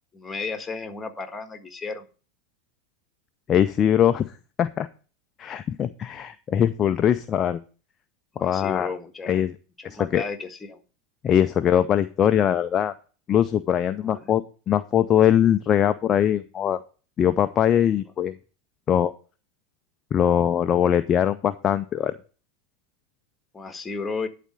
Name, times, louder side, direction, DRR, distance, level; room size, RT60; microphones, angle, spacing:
voice 1, 0.1-2.1 8.3-9.4 9.8-10.8 14.0-14.3 23.5-24.3, left 4 dB, 15° left, 7 dB, 1.6 m, -33 dB
voice 2, 3.5-4.3 4.6-4.9 5.4-7.6 8.4-8.9 9.3-9.5 9.8-10.2 11.2-12.9 13.3-16.8 17.2-18.3 18.9-19.1 20.1-22.1, left 9 dB, 30° left, 11 dB, 0.5 m, -21 dB
11.0 x 4.2 x 7.6 m, 0.38 s
figure-of-eight pair, 85°, 0 cm